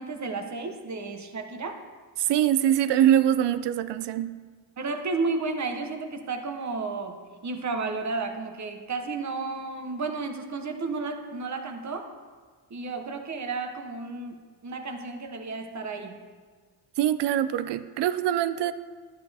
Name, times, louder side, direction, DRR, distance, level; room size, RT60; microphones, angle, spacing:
voice 1, 0.0-1.8 4.8-12.1 12.7-16.2, right 3 dB, 40° right, 5 dB, 1.1 m, -32 dB
voice 2, 2.2-4.4 17.0-18.7, right 11 dB, 70° right, 13 dB, 0.6 m, -23 dB
11.0 x 10.0 x 3.5 m, 1.5 s
cardioid pair, 105°, 43 cm